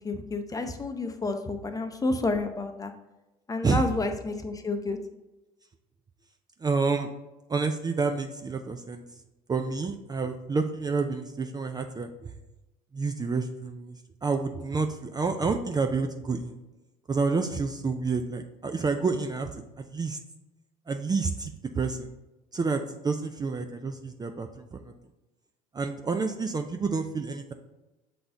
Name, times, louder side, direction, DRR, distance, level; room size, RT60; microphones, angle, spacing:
voice 1, 0.0-2.9 3.5-5.0, left 3 dB, 20° left, 6 dB, 0.7 m, -30 dB
voice 2, 6.6-7.1 7.5-9.0 9.5-12.3 12.9-13.9 14.2-16.5 17.1-19.5 19.9-20.2 20.9-22.1 22.5-24.9 25.7-27.5, right 4 dB, 20° right, 6 dB, 0.5 m, -29 dB
6.7 x 4.0 x 3.7 m, 1.0 s
hypercardioid pair, 70°, 18 cm